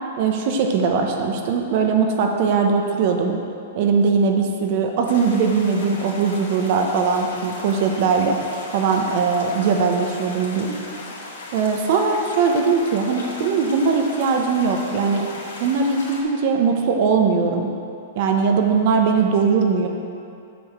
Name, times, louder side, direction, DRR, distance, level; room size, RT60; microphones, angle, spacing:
voice 1, 0.2-3.4 3.7-8.4 8.7-10.8 11.5-15.3 15.6-17.7 18.2-19.9, right 5 dB, 50° right, 3 dB, 0.9 m, -20 dB
sound 1, 5.0-16.2, left 2 dB, 80° left, 1.9 m, -37 dB
7.8 x 4.7 x 6.5 m, 2.6 s
hypercardioid pair, 150°, 0 cm